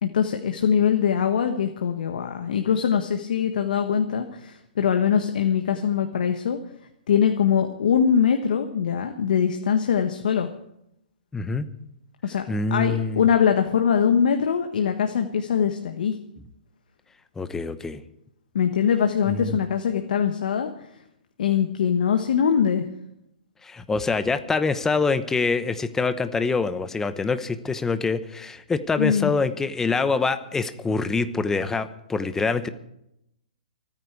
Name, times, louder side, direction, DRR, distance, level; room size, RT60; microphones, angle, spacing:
voice 1, 0.0-6.6 7.1-10.5 12.2-12.4 12.7-16.1 18.5-20.7 21.4-22.8 29.0-29.3, left 7 dB, 70° left, 5 dB, 1.4 m, -22 dB
voice 2, 11.3-11.7 12.5-13.2 17.4-18.0 19.3-19.6 23.6-32.7, left 4 dB, 10° left, 11 dB, 1.0 m, -25 dB
28.0 x 9.6 x 4.8 m, 0.80 s
hypercardioid pair, 140°, 5 cm